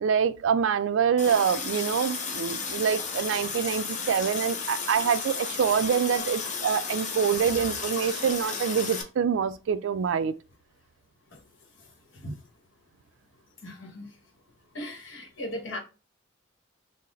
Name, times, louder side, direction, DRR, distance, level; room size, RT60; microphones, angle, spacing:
voice 1, 0.0-10.3, right 7 dB, 70° right, 0.3 m, -26 dB
Water tap faucet, 1.2-9.0, left 5 dB, 40° left, 0.7 m, -33 dB
voice 2, 13.6-14.1 14.7-15.8, left 1 dB, 70° left, 1.1 m, -38 dB
3.8 x 2.1 x 4.2 m
head